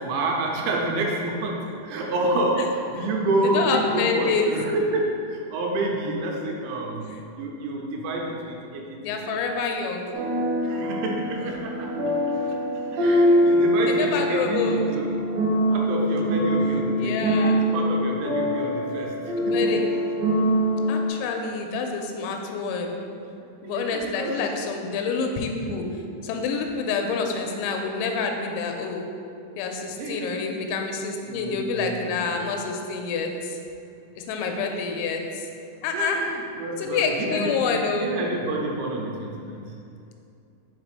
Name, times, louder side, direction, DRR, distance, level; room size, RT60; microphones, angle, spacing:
voice 1, 0.0-9.0 9.3-9.4 10.6-11.9 12.9-15.1 15.7-19.7 23.6-24.4 30.0-30.5 31.3-32.2 35.9-37.5 38.0-39.8, right 2 dB, 85° right, 0 dB, 2.9 m, -28 dB
voice 2, 3.4-4.5 9.0-10.1 12.4-12.5 13.9-14.8 17.0-17.5 19.4-19.8 20.9-23.0 23.6-25.9 26.2-29.1 29.6-33.3 34.2-35.4 35.8-36.2 36.8-38.1, left 5 dB, 85° left, 3 dB, 3.0 m, -27 dB
sound 1, 10.1-21.1, equal, 60° right, 1.9 m, -23 dB
5.5 x 5.1 x 4.7 m, 2.5 s
omnidirectional pair, 5.4 m